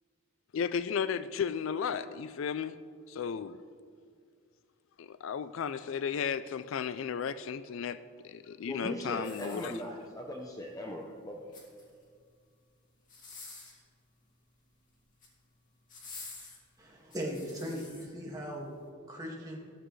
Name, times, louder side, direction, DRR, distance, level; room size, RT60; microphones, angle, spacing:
voice 1, 0.5-2.8 3.1-3.6 5.0-9.8, left 7 dB, 65° left, 14 dB, 0.3 m, -34 dB
voice 2, 8.7-11.6, equal, 15° left, 1 dB, 0.7 m, -40 dB
sound 1, 9.2-10.2 11.3-12.1 13.0-13.8 14.9-15.4 15.9-18.1 18.6-18.8, left 3 dB, 35° left, 2.3 m, -49 dB
voice 3, 16.8-18.7 19.1-19.6, equal, 15° right, -3 dB, 1.9 m, -38 dB
13.5 x 13.5 x 3.2 m, 2.1 s
head